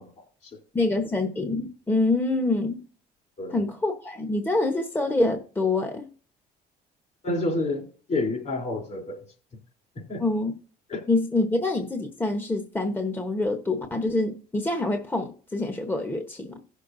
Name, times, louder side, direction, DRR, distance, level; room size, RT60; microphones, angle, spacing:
voice 1, 0.7-2.8 3.5-6.0 10.2-10.5 11.1-16.6, left 2 dB, 10° left, 1.0 m, -26 dB
voice 2, 7.2-9.2 10.1-10.2 10.9-11.1, left 2 dB, 45° left, 3.5 m, -29 dB
17.0 x 6.5 x 2.7 m
cardioid pair, 110°, 17 cm